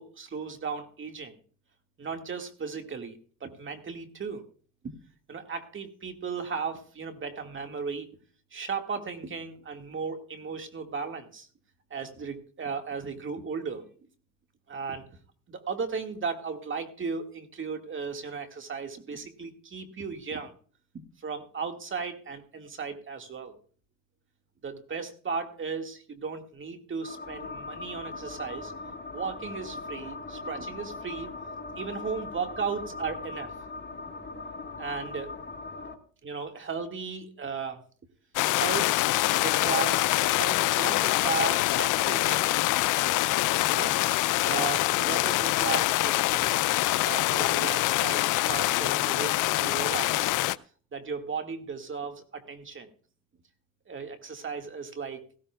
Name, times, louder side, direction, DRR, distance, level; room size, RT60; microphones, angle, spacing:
voice 1, 0.0-1.3 2.0-4.4 4.8-4.9 5.3-8.1 8.5-11.5 11.9-13.9 14.7-15.1 15.5-20.5 20.9-23.6 24.6-28.7 29.1-31.3 31.8-33.5 34.8-35.3 36.2-37.8 38.5-39.0 39.4-42.5 43.7-46.8 47.1-50.3 50.9-52.9 53.9-55.2, right 5 dB, 40° right, 6 dB, 1.8 m, -36 dB
sound 1, 27.0-35.9, left 3 dB, 35° left, 1.6 m, -40 dB
sound 2, 38.4-50.6, left 18 dB, 85° left, 0.5 m, -25 dB
18.0 x 15.5 x 2.3 m, 0.42 s
cardioid pair, 90°, 30 cm